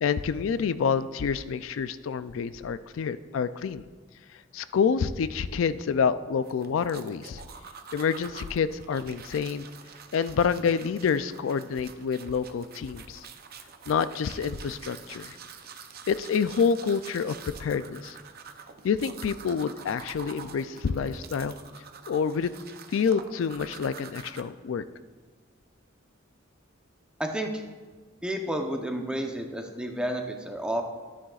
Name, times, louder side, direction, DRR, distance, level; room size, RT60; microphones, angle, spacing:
voice 1, 0.0-3.8 4.5-7.4 7.9-9.7 10.1-13.2 13.9-15.4 16.1-17.3 17.6-18.2 18.8-21.6 22.1-22.5 22.9-24.8, left 6 dB, 80° left, 13 dB, 0.4 m, -27 dB
sound 1, 6.4-24.4, right 6 dB, 50° right, 0.6 m, -47 dB
voice 2, 27.2-27.6 28.2-30.8, right 1 dB, 5° right, 3 dB, 0.7 m, -31 dB
13.0 x 9.9 x 2.4 m, 1.4 s
head